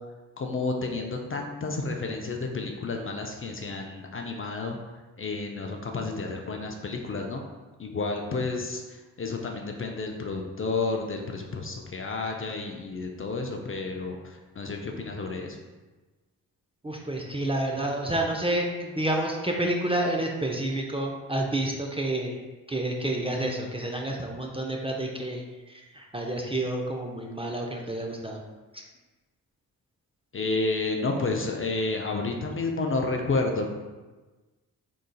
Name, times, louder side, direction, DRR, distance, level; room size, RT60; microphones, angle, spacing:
voice 1, 0.4-4.8 5.2-7.4 7.8-15.6 30.3-33.7, left 3 dB, 30° left, 2 dB, 0.5 m, -31 dB
voice 2, 16.8-22.4 22.7-28.4 28.7-28.8, right 1 dB, 15° right, 0 dB, 0.5 m, -29 dB
3.8 x 3.7 x 2.3 m, 1.2 s
hypercardioid pair, 45°, 42 cm